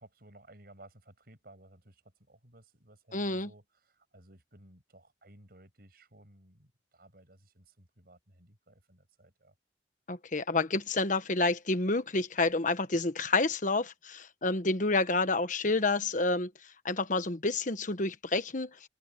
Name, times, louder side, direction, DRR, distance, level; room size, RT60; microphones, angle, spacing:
voice 1, 0.0-9.5, right 1 dB, 60° right, 7.0 m, -57 dB
voice 2, 3.1-3.5 10.1-16.5 16.8-18.7, left 3 dB, 45° left, 1.4 m, -29 dB
head